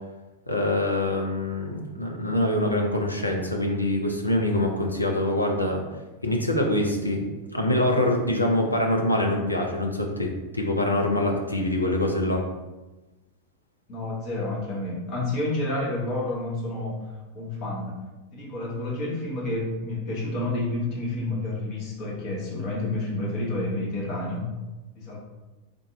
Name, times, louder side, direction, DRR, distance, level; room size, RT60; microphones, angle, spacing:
voice 1, 0.5-5.8 6.2-7.3 7.5-12.4, left 1 dB, 85° left, 0 dB, 0.6 m, -24 dB
voice 2, 13.9-17.1 17.3-18.0 18.3-24.5 24.9-25.2, left 2 dB, 40° left, -4 dB, 1.3 m, -29 dB
3.8 x 2.8 x 3.7 m, 1.1 s
figure-of-eight pair, 90°, 0 cm